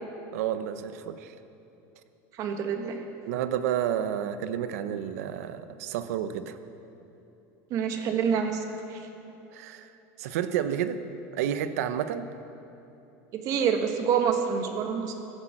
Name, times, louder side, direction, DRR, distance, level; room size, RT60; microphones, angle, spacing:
voice 1, 0.3-1.3 3.3-6.6 9.5-9.9 10.2-11.0 11.3-12.3, right 10 dB, 85° right, 11 dB, 0.8 m, -30 dB
voice 2, 2.3-3.0 7.7-8.6 8.9-9.0 13.3-15.1, right 7 dB, 45° right, 5 dB, 1.6 m, -27 dB
14.5 x 9.9 x 7.6 m, 3.0 s
supercardioid pair, 140°, 8 cm